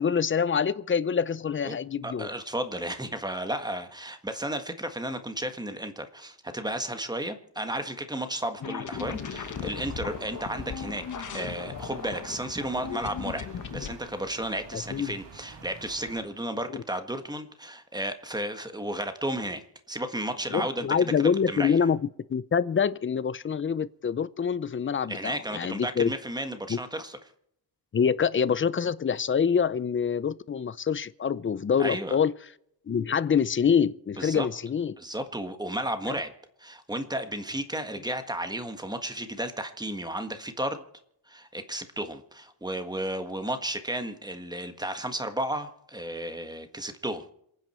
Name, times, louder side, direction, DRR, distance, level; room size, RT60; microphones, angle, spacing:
voice 1, 0.0-2.3 14.7-15.1 16.7-16.8 20.5-22.0 22.3-26.1 26.7-26.8 27.9-32.3 32.9-35.0, left 7 dB, 30° left, 0.6 m, -26 dB
voice 2, 2.0-11.0 11.3-13.5 13.7-19.6 19.9-20.9 21.2-21.8 25.1-27.2 31.8-32.2 34.2-34.5 35.0-36.3 36.6-40.8 41.3-47.3, right 1 dB, 10° right, 1.6 m, -33 dB
sound 1, 8.6-13.9, left 7 dB, 45° left, 1.1 m, -37 dB
sound 2, 8.9-16.2, right 5 dB, 80° right, 3.1 m, -48 dB
27.5 x 9.5 x 4.4 m
wide cardioid pair, 140°, 42 cm